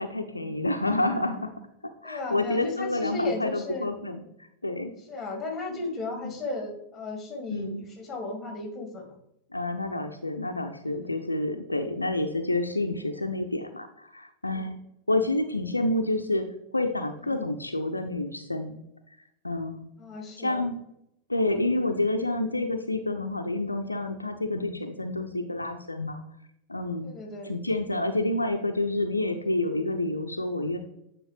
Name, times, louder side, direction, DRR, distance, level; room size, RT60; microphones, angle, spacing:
voice 1, 0.0-1.5 2.0-4.2 4.6-4.9 5.7-5.8 6.2-6.3 7.5-7.8 9.5-14.7 15.1-16.5 16.7-18.8 19.4-19.8 20.4-20.7 21.3-26.2 26.7-27.1 27.4-30.8, left 2 dB, 85° left, 6 dB, 0.5 m, -28 dB
voice 2, 2.0-3.9 5.1-9.1 10.9-11.1 14.5-14.7 17.2-17.4 20.0-20.6 27.0-27.5, left 3 dB, 15° left, 2 dB, 2.0 m, -35 dB
8.9 x 4.3 x 3.2 m, 0.79 s
figure-of-eight pair, 90°, 0 cm